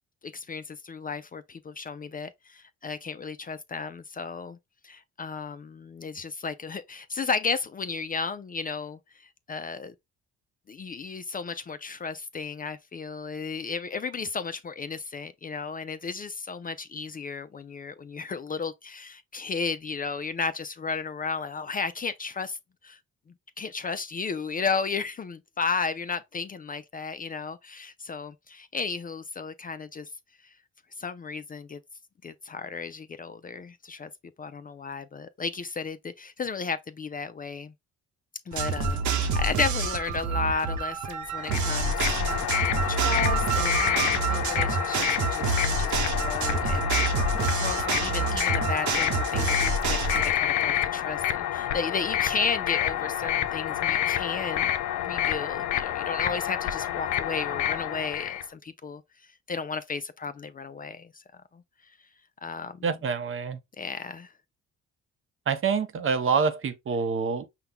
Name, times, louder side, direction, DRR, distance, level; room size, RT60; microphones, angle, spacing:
voice 1, 0.2-4.6 4.8-9.9 10.7-22.6 22.8-23.0 23.6-30.1 30.4-30.5 31.0-31.8 32.2-34.1 34.4-37.7 38.5-46.9 47.6-54.7 55.0-59.0 59.5-61.2 61.5-61.6 62.4-62.8 63.8-64.3, left 5 dB, 30° left, 0.4 m, -34 dB
sound 1, 38.5-50.3, right 4 dB, 70° right, 1.0 m, -27 dB
sound 2, 41.3-58.4, left 11 dB, 80° left, 0.5 m, -28 dB
voice 2, 62.8-63.6 65.5-67.5, right 5 dB, 45° right, 0.7 m, -26 dB
5.6 x 2.2 x 3.6 m
cardioid pair, 90°, 30 cm